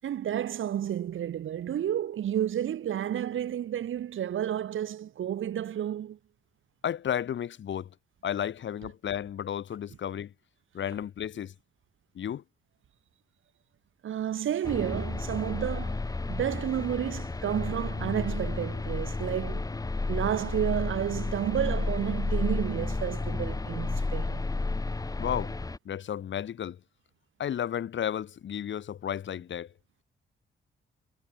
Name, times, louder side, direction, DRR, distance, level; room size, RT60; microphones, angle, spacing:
voice 1, 0.0-6.2 14.0-19.7 20.1-24.4, right 10 dB, 80° right, 5.9 m, -31 dB
voice 2, 6.8-7.9 8.2-10.3 10.7-11.5 12.1-12.4 25.2-25.5 25.8-26.8 27.4-29.7, left 9 dB, 65° left, 6.8 m, -33 dB
sound 1, 14.6-25.8, left 3 dB, 15° left, 5.8 m, -32 dB
wide cardioid pair, 160°, 20 cm